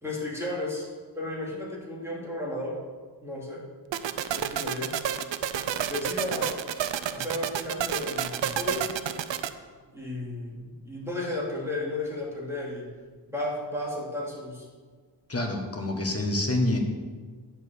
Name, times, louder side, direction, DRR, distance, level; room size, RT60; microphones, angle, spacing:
voice 1, 0.0-0.9 1.1-2.8 3.2-3.6 4.3-4.9 5.9-6.5 7.1-8.9 9.9-12.8 13.3-14.7, left 1 dB, 5° right, -4 dB, 2.4 m, -33 dB
sound 1, 3.9-9.5, right 9 dB, 85° right, 0.5 m, -29 dB
voice 2, 15.3-16.8, left 1 dB, 35° left, 3 dB, 1.4 m, -27 dB
9.2 x 4.4 x 6.8 m, 1.5 s
wide cardioid pair, 85°, 43 cm